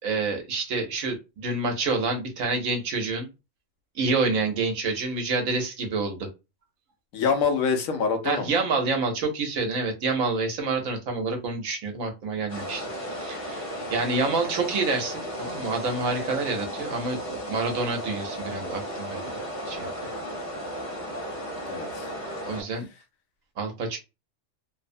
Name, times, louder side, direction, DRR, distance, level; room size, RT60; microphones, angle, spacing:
voice 1, 0.0-3.3 3.9-6.3 8.2-19.2 19.7-20.1 22.5-22.9 23.6-24.0, right 3 dB, 85° right, 1.2 m, -28 dB
voice 2, 7.1-8.5 21.6-22.1, left 5 dB, 90° left, 1.1 m, -25 dB
sound 1, 12.5-22.6, equal, 60° left, 1.3 m, -34 dB
3.0 x 2.0 x 2.5 m
omnidirectional pair, 1.4 m